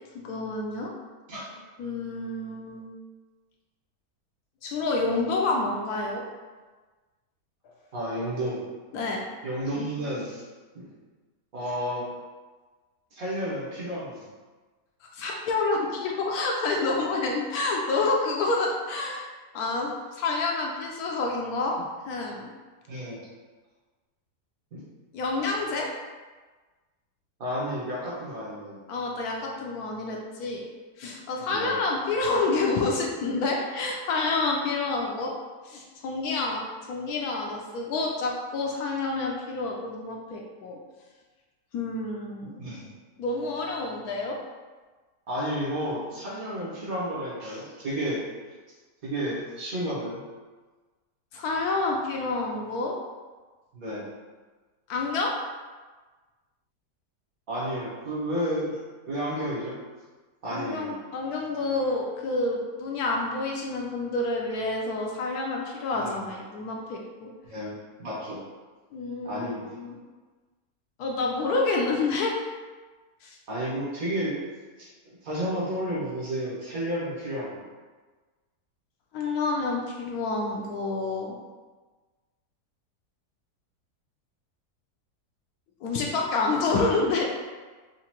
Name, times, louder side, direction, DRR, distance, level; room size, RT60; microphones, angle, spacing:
voice 1, 0.2-0.9 1.8-2.9 4.6-6.2 8.9-9.2 15.1-19.3 19.5-21.8 22.1-22.5 25.1-25.9 28.9-30.6 31.0-35.3 35.6-40.8 41.7-42.6 43.2-44.4 51.3-53.0 54.9-55.3 60.5-67.3 68.9-69.9 71.0-72.3 73.2-73.4 79.1-81.3 85.8-87.2, left 3 dB, 75° left, 0 dB, 1.0 m, -28 dB
voice 2, 7.9-8.6 9.4-10.4 10.7-10.9 11.5-12.1 13.1-14.3 22.9-23.2 24.7-24.8 27.4-28.8 31.5-31.7 42.6-42.9 45.3-48.2 49.0-50.2 53.7-54.1 57.5-58.8 59.1-59.7 60.4-60.9 66.0-66.2 67.4-67.7 68.0-68.4 69.2-69.7 73.5-74.4 74.8-77.6, equal, 60° right, -7 dB, 1.6 m, -31 dB
4.7 x 2.5 x 2.9 m, 1.3 s
omnidirectional pair, 1.8 m